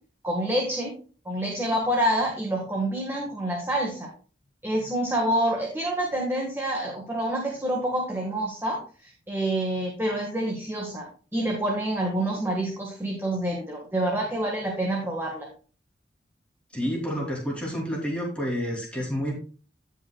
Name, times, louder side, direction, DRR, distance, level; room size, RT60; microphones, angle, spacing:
voice 1, 0.2-0.9 1.2-4.1 4.6-11.1 11.3-15.5, right 1 dB, 15° right, -1 dB, 1.5 m, -27 dB
voice 2, 16.7-19.3, equal, 5° left, -2 dB, 2.8 m, -29 dB
16.5 x 5.5 x 2.3 m, 0.38 s
head